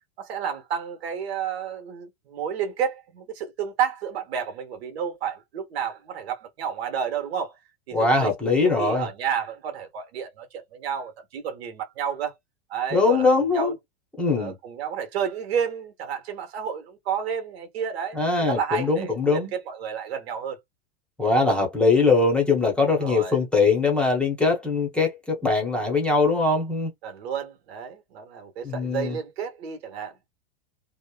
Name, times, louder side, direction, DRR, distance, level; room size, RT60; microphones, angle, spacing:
voice 1, 0.2-7.5 7.9-8.3 8.6-12.3 12.7-13.7 14.3-20.6 22.9-23.4 27.0-30.2, right 8 dB, 80° right, 1.1 m, -31 dB
voice 2, 7.9-9.1 12.9-13.7 14.2-14.5 18.1-19.5 21.2-26.9 28.6-29.2, left 3 dB, 5° left, 0.7 m, -21 dB
2.9 x 2.1 x 2.2 m
supercardioid pair, 155°, 31 cm